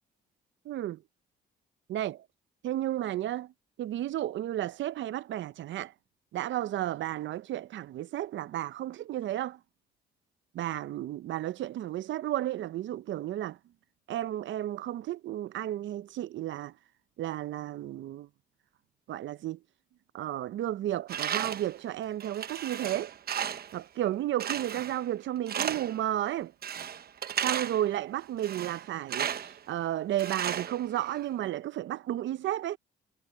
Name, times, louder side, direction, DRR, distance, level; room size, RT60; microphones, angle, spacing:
voice 1, 0.7-1.0 1.9-2.2 2.6-3.5 3.8-5.9 6.3-9.6 10.5-13.6 14.1-16.7 17.2-18.3 19.1-19.6 20.1-23.1 23.7-26.5 27.4-32.8, right 13 dB, 70° right, 0.6 m, -33 dB
Tools, 21.1-21.8 22.2-23.8 24.4-25.1 25.5-26.0 26.6-27.9 28.4-29.6 30.2-31.2, right 8 dB, 50° right, 1.0 m, -34 dB
cardioid pair, 90°, 20 cm